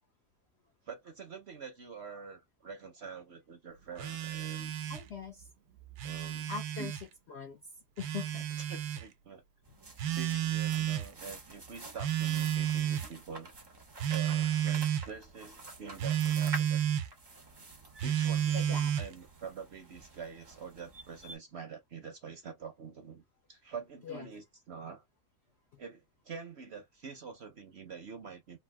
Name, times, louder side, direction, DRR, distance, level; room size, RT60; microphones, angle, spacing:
voice 1, 0.9-4.7 6.0-6.5 6.8-6.9 8.7-9.4 10.1-13.5 14.1-16.9 18.0-23.2 23.5-25.0 25.8-28.6, right 5 dB, 55° right, 0.8 m, -46 dB
Telephone, 4.0-5.1 5.8-7.0 8.0-9.0 10.0-11.1 12.0-13.1 14.0-15.1 16.0-17.1 18.0-19.1, right 10 dB, 85° right, 1.2 m, -31 dB
voice 2, 4.9-5.5 6.5-7.0 7.3-8.5 18.5-18.9 24.0-24.3 25.7-25.8, left 6 dB, 70° left, 0.6 m, -42 dB
sound 1, 9.6-21.4, right 2 dB, 40° right, 0.3 m, -48 dB
3.4 x 2.6 x 2.2 m
omnidirectional pair, 1.7 m